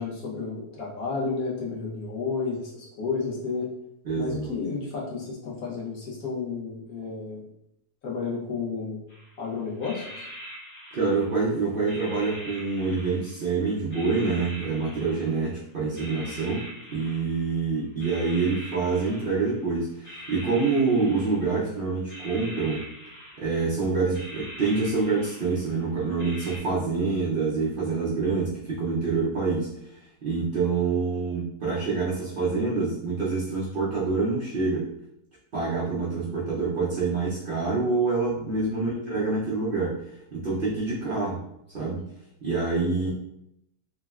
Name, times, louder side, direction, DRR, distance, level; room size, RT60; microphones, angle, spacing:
voice 1, 0.0-3.7 4.1-7.4 8.0-9.1 9.4-10.3 38.7-39.1 43.0-43.1, left 4 dB, 65° left, -5 dB, 1.2 m, -32 dB
voice 2, 4.0-4.5 10.9-16.7 16.9-22.8 23.4-29.7 30.2-34.9 35.5-39.9 40.3-41.4 41.7-42.0 42.4-43.1, right 4 dB, 80° right, -6 dB, 0.4 m, -26 dB
sound 1, 9.1-9.4 9.7-11.5 11.9-13.5 13.9-15.6 15.9-17.6 18.0-19.7 20.0-21.7 22.1-23.7 24.1-25.8 26.2-26.6, equal, 40° left, 1.3 m, -43 dB
3.6 x 2.1 x 2.3 m, 0.78 s
omnidirectional pair, 1.7 m